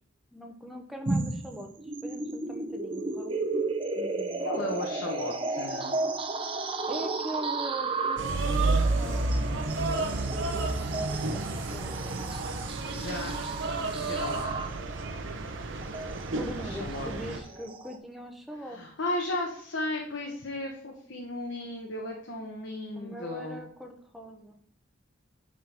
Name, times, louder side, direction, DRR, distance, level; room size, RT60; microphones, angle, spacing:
voice 1, 0.3-1.7 2.0-3.3 4.0-4.7 6.9-12.4 16.3-18.8 22.9-24.5, equal, ahead, 2 dB, 0.8 m, -42 dB
sound 1, 1.0-18.0, right 3 dB, 25° right, 0.6 m, -34 dB
voice 2, 4.4-6.0 12.9-13.5 14.1-14.6 16.6-17.1 18.7-23.6, left 2 dB, 75° left, 0 dB, 1.1 m, -35 dB
sound 2, 8.2-17.4, right 2 dB, 70° right, 0.8 m, -31 dB
9.3 x 3.8 x 4.4 m, 0.62 s
head